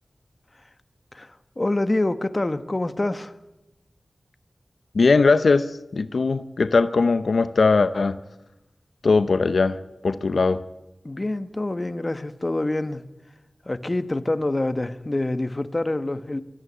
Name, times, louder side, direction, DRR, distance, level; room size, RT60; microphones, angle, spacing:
voice 1, 1.1-3.3 11.0-13.0 13.6-16.4, left 2 dB, 30° left, 1.2 m, -26 dB
voice 2, 4.9-8.2 9.0-9.8 10.0-10.6, left 4 dB, 85° left, 0.8 m, -20 dB
23.5 x 14.0 x 9.6 m
wide cardioid pair, 80°, 0 cm